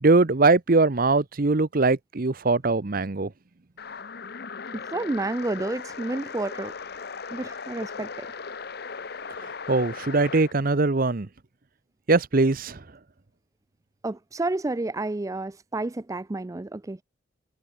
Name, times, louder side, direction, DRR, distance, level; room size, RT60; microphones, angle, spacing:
voice 1, 0.0-3.3 9.7-11.3 12.1-12.8, right 3 dB, 45° right, 0.8 m, -21 dB
sound 1, 3.8-10.5, left 5 dB, 55° left, 1.0 m, -38 dB
voice 2, 4.9-6.8 7.3-8.3 14.0-17.0, right 2 dB, 15° right, 0.4 m, -30 dB
head